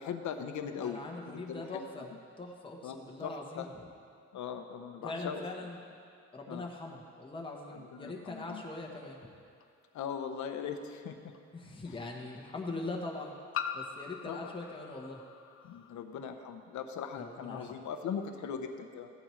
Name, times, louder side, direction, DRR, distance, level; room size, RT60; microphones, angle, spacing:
voice 1, 0.0-2.1 2.8-3.7 4.3-5.4 6.5-6.6 7.7-8.6 9.9-11.3 11.9-12.0 14.3-14.5 15.6-19.1, left 7 dB, 75° left, 7 dB, 0.8 m, -40 dB
voice 2, 0.8-2.1 2.4-3.7 5.0-5.8 6.3-9.3 11.5-13.4 13.7-15.2 17.2-17.8, left 2 dB, 15° left, -1 dB, 1.1 m, -42 dB
sound 1, 9.6-9.7 11.3-11.4 13.5-16.0, left 8 dB, 50° left, 0.6 m, -41 dB
14.5 x 8.7 x 3.2 m, 2.3 s
cardioid pair, 105°, 29 cm